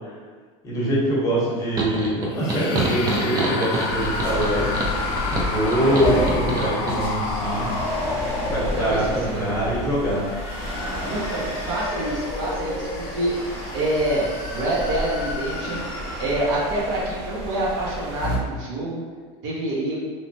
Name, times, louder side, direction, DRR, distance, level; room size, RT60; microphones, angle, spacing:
voice 1, 0.6-4.7 5.3-7.7 8.5-10.2, right 1 dB, 25° left, -7 dB, 0.9 m, -24 dB
sound 1, 1.8-7.0, right 2 dB, 25° right, 0.4 m, -27 dB
sound 2, 2.3-9.4 10.1-16.6, left 3 dB, 65° left, 0.4 m, -31 dB
sound 3, 3.9-18.4, equal, 75° right, 1.2 m, -31 dB
voice 2, 5.8-6.4 8.6-9.5 11.1-14.3 14.5-15.8 16.2-19.0 19.4-20.0, right 1 dB, 60° right, -5 dB, 0.6 m, -26 dB
3.1 x 2.1 x 2.6 m, 1.5 s
supercardioid pair, 145°, 15 cm